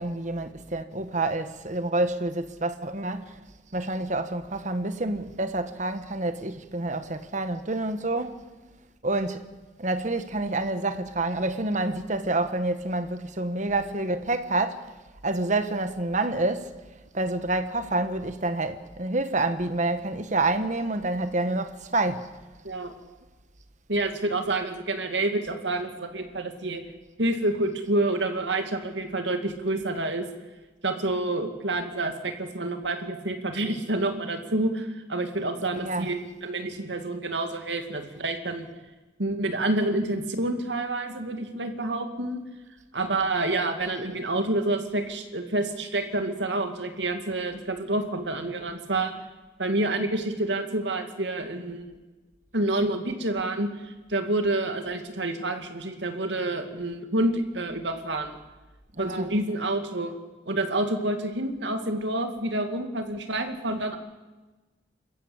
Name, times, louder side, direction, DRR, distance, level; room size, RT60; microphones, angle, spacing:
voice 1, 0.0-3.4 3.7-8.4 9.0-9.4 9.8-14.8 15.2-16.7 17.1-22.3 35.7-36.1 59.0-59.3, right 2 dB, 40° right, 1.5 m, -28 dB
voice 2, 23.9-26.8 27.2-30.3 30.8-38.7 39.2-42.4 42.9-49.1 49.6-52.0 52.5-58.4 59.0-60.1 60.5-64.0, right 2 dB, 75° right, 2.5 m, -28 dB
27.0 x 14.5 x 8.8 m
head